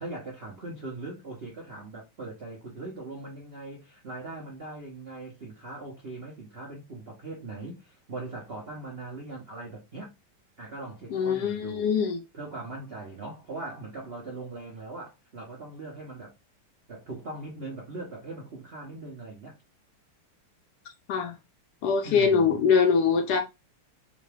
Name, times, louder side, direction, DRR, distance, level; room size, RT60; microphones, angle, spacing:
voice 1, 0.0-10.1 10.6-11.9 12.3-16.3 16.9-19.6 22.0-22.7, right 2 dB, 75° right, 0.5 m, -40 dB
voice 2, 11.1-12.2 21.1-21.3 21.8-23.4, left 6 dB, 70° left, 0.9 m, -23 dB
3.8 x 2.3 x 3.2 m
omnidirectional pair, 2.4 m